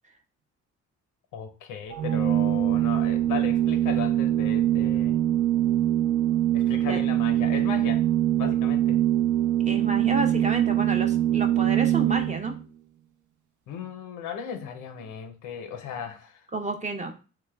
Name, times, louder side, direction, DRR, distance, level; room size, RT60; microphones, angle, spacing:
voice 1, 1.3-5.2 6.5-8.1 8.4-9.0 13.7-16.5, left 7 dB, 80° left, 0.7 m, -36 dB
Organ, 1.9-12.6, right 12 dB, 75° right, 0.5 m, -23 dB
voice 2, 9.7-12.5 16.5-17.1, right 2 dB, 25° right, 0.5 m, -30 dB
3.0 x 2.1 x 3.3 m
cardioid pair, 90°, 30 cm